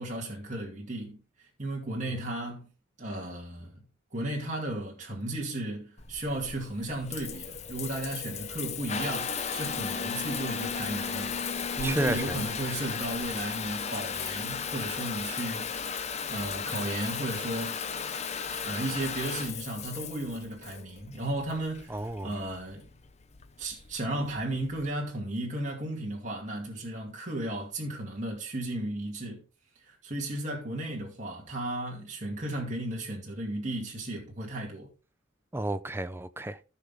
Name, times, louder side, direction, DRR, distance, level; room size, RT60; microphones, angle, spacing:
voice 1, 0.0-2.7 3.0-3.8 4.1-11.4 11.8-15.7 16.3-17.8 18.6-22.9 23.6-29.4 29.8-34.9, right 1 dB, 35° right, 2.3 m, -34 dB
Water tap faucet / Bathtub (filling or washing) / Trickle dribble, 6.0-24.9, left 6 dB, 30° left, 0.8 m, -35 dB
voice 2, 11.8-12.4 21.9-22.3 35.5-36.6, right 1 dB, 10° right, 0.5 m, -32 dB
15.0 x 6.0 x 3.6 m
head